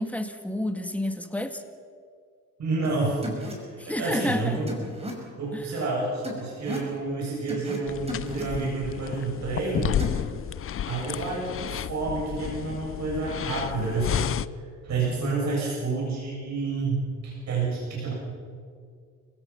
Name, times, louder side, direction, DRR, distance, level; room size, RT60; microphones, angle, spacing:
voice 1, 0.0-1.6 3.8-4.6, left 1 dB, 5° left, 7 dB, 1.9 m, -29 dB
voice 2, 2.6-3.5 3.9-4.8 5.4-10.0 10.9-14.3 14.8-18.1, right 3 dB, 65° right, -4 dB, 7.2 m, -29 dB
sound 1, 2.8-2.9 3.2-3.5 4.7-5.1 6.2-6.9 7.5-7.8 8.1-8.4 10.0-10.2, equal, 20° right, 5.5 m, -35 dB
sound 2, 7.9-14.5, left 10 dB, 45° left, 0.6 m, -32 dB
29.0 x 17.0 x 5.8 m, 2.1 s
cardioid pair, 90°, 30 cm